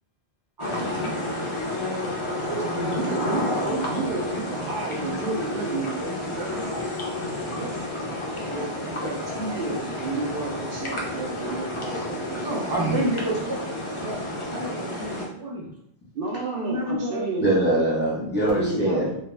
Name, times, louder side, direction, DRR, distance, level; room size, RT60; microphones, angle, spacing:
sound 1, 0.6-15.3, left 1 dB, 45° left, 0.4 m, -30 dB
voice 1, 0.6-1.2 2.3-3.5 7.2-7.7 8.5-8.6 12.3-13.6 14.0-14.2 14.5-15.7 16.5-17.2, right 1 dB, 30° right, -3 dB, 0.5 m, -30 dB
voice 2, 1.6-2.5 7.2-7.9 17.4-19.1, right 1 dB, 10° left, -9 dB, 0.8 m, -25 dB
voice 3, 2.9-6.7 8.5-12.8 16.1-17.6 18.3-19.1, right 3 dB, 65° right, -2 dB, 0.8 m, -31 dB
2.3 x 2.1 x 3.1 m, 0.73 s
omnidirectional pair, 1.1 m